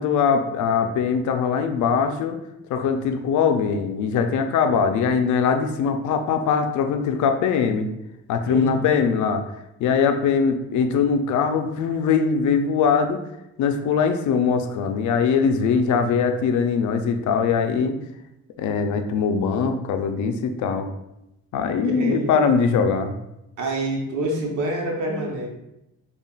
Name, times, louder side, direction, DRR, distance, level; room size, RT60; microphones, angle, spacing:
voice 1, 0.0-2.4 2.7-7.9 8.3-9.4 9.8-13.2 13.6-18.0 18.6-20.9 21.5-23.2, left 6 dB, 75° left, 7 dB, 0.5 m, -21 dB
voice 2, 8.4-8.9 21.8-22.5 23.6-25.5, right 1 dB, 75° right, -1 dB, 1.0 m, -27 dB
5.2 x 2.4 x 2.3 m, 0.87 s
cardioid pair, 90°, 30 cm